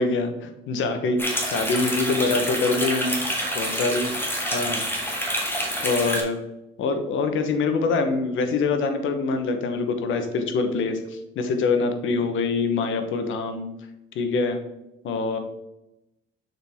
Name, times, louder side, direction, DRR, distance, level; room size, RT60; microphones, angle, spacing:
voice 1, 0.0-3.2 3.5-4.1 4.5-4.8 5.8-6.4 6.8-13.7 14.1-14.6 15.0-15.4, left 4 dB, 80° left, 7 dB, 1.0 m, -24 dB
sound 1, 1.2-6.2, equal, 10° left, 1.6 m, -27 dB
6.5 x 4.5 x 3.5 m, 0.90 s
cardioid pair, 90°, 20 cm